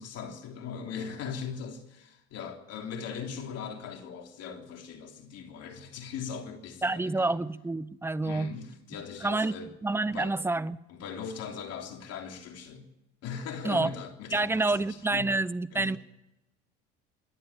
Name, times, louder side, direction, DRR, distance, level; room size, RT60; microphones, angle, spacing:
voice 1, 0.0-7.4 8.2-9.7 10.0-10.4 10.9-12.9 13.2-15.3 15.7-16.0, left 6 dB, 55° left, 3.4 m, -40 dB
voice 2, 6.8-8.5 9.2-9.5 9.8-10.8 13.6-13.9 14.3-16.0, right 2 dB, 10° right, 0.7 m, -28 dB
27.0 x 11.0 x 8.7 m
supercardioid pair, 90°, 29 cm